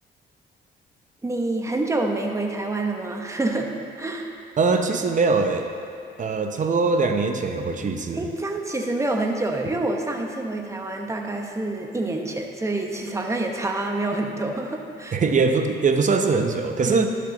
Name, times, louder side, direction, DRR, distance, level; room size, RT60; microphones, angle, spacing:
voice 1, 1.2-3.7 4.0-4.3 8.1-15.2 16.8-17.1, right 2 dB, 15° right, 2 dB, 1.0 m, -27 dB
voice 2, 4.6-5.7 6.2-8.2 15.1-17.1, right 4 dB, 40° right, 5 dB, 0.8 m, -22 dB
11.5 x 6.7 x 3.9 m, 2.6 s
cardioid pair, 90°, 20 cm